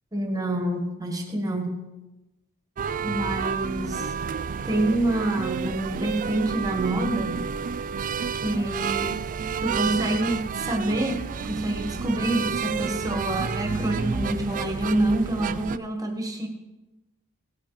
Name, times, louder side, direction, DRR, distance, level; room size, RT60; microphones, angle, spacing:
voice 1, 0.1-1.8 3.0-4.1 4.6-7.4 8.3-9.2 9.6-16.5, right 1 dB, 15° right, 3 dB, 1.4 m, -27 dB
sound 1, 2.8-15.8, right 6 dB, 35° right, 0.3 m, -30 dB
17.5 x 8.6 x 4.0 m, 1.1 s
head